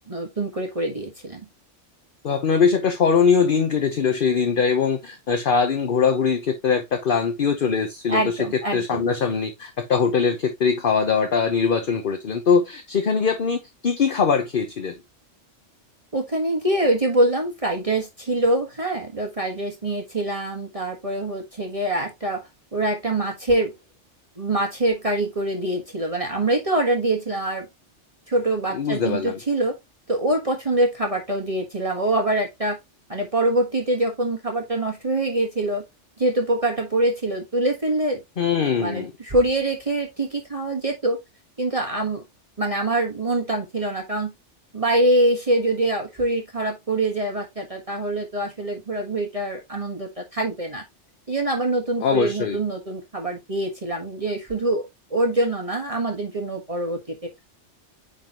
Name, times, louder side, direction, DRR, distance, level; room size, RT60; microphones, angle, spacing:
voice 1, 0.1-1.4 8.1-9.0 16.1-22.4 22.7-23.7 24.4-27.7 28.3-29.7 30.1-32.8 33.1-35.8 36.2-38.2 38.8-41.2 41.6-42.2 42.6-44.3 44.7-50.8 51.3-57.1, right 1 dB, 30° right, 1.4 m, -24 dB
voice 2, 2.2-8.4 8.7-14.9 28.7-29.3 38.4-39.1 52.0-52.6, left 6 dB, 50° left, 1.0 m, -21 dB
9.0 x 3.9 x 2.9 m
omnidirectional pair, 1.2 m